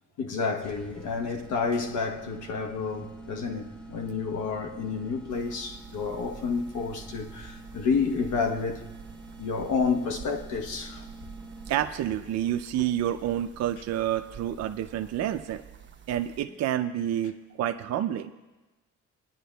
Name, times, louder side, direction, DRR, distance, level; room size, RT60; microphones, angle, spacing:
voice 1, 0.2-8.8 9.4-11.0 12.8-12.9, left 5 dB, 80° left, 1.0 m, -30 dB
sound 1, 0.6-12.0, right 2 dB, 5° left, 0.9 m, -46 dB
sound 2, 5.3-16.5, right 7 dB, 40° right, 0.9 m, -48 dB
voice 2, 11.7-15.6 16.1-18.3, right 11 dB, 60° right, 0.5 m, -29 dB
19.0 x 10.0 x 2.3 m
cardioid pair, 90°, 30 cm